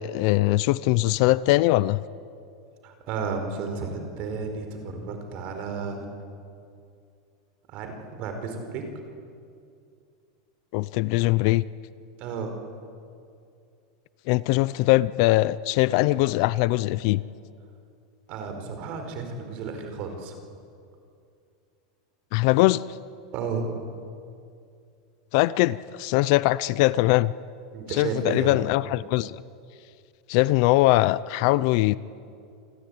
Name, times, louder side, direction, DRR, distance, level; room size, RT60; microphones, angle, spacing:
voice 1, 0.0-2.0 10.7-11.6 14.3-17.2 22.3-22.8 25.3-27.3 27.9-29.4 30.3-32.0, left 18 dB, 45° left, 18 dB, 0.5 m, -21 dB
voice 2, 2.8-6.0 7.7-8.8 12.2-12.5 18.3-20.4 23.3-23.7 27.7-28.5, right 5 dB, 35° right, 6 dB, 4.7 m, -32 dB
28.0 x 20.5 x 9.5 m, 2.4 s
supercardioid pair, 170°, 3 cm